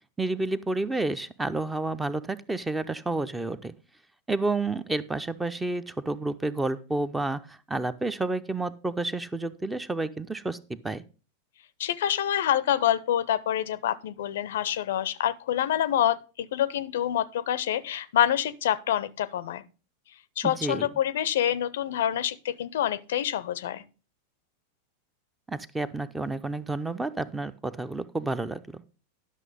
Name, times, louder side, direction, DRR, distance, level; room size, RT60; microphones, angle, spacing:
voice 1, 0.2-3.7 4.3-11.0 20.4-20.9 25.5-28.6, right 2 dB, 10° right, 0.6 m, -30 dB
voice 2, 11.8-19.6 20.4-23.8, left 11 dB, 60° left, 0.5 m, -27 dB
11.0 x 6.2 x 5.0 m
figure-of-eight pair, 90°, 0 cm